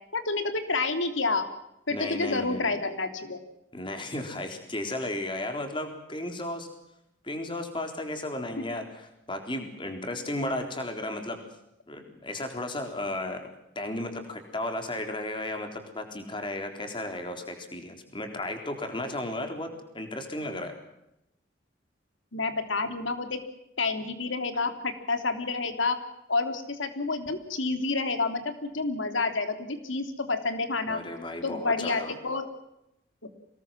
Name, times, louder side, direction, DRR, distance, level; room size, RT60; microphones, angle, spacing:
voice 1, 0.1-1.5 1.9-3.4 8.6-8.7 22.3-23.4 23.8-26.0 26.3-31.0 31.4-32.5 33.2-33.3, left 3 dB, 80° left, 8 dB, 3.1 m, -29 dB
voice 2, 1.9-2.8 3.7-6.7 7.2-11.4 11.9-13.5 13.8-20.7 30.9-32.1, left 1 dB, 25° left, 5 dB, 3.8 m, -34 dB
25.0 x 20.0 x 7.5 m, 0.84 s
head